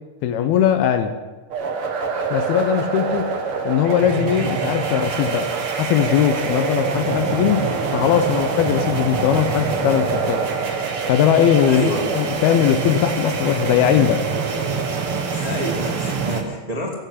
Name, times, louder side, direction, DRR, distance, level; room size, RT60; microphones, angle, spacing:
voice 1, 0.2-1.2 2.3-3.4 3.6-10.5 11.1-14.2, left 10 dB, 80° left, 9 dB, 2.4 m, -20 dB
sound 1, 1.5-16.4, right 5 dB, 75° right, 1.2 m, -24 dB
voice 2, 11.7-12.1 15.3-16.9, right 1 dB, 35° right, -1 dB, 0.6 m, -27 dB
16.0 x 7.9 x 9.8 m, 1.3 s
omnidirectional pair, 5.0 m